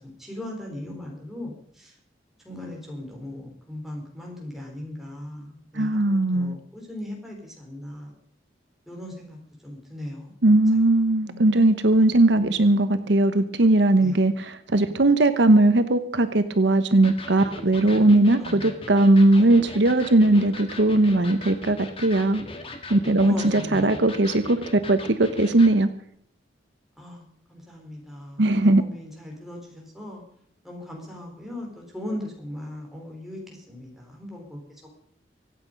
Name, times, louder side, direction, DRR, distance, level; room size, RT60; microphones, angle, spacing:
voice 1, 0.0-1.9 2.4-8.1 8.9-9.4 9.6-10.3 11.2-12.1 14.0-14.1 18.4-18.6 23.2-23.9 27.0-27.2 27.5-28.4 28.8-30.2 30.6-33.4 33.7-34.6, left 1 dB, ahead, -1 dB, 4.4 m, -38 dB
voice 2, 5.7-6.6 10.4-22.4 22.9-25.9 28.4-28.8, right 2 dB, 70° right, 10 dB, 0.9 m, -19 dB
Electric guitar, 17.0-25.8, left 2 dB, 30° left, 2.0 m, -39 dB
24.5 x 8.6 x 5.3 m, 0.64 s
head